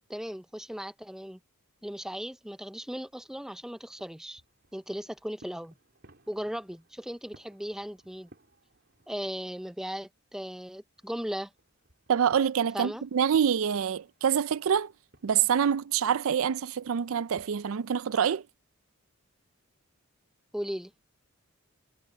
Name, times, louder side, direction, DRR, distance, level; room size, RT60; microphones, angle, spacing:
voice 1, 0.1-1.4 1.8-4.4 4.7-5.7 6.3-8.3 9.1-11.5 12.7-13.0 20.5-20.9, equal, ahead, 0.4 m, -37 dB
sound 1, 2.9-9.7 10.1-17.6, right 1 dB, 50° right, 4.0 m, -62 dB
voice 2, 12.1-14.9 15.2-18.4, right 8 dB, 75° right, 0.4 m, -26 dB
head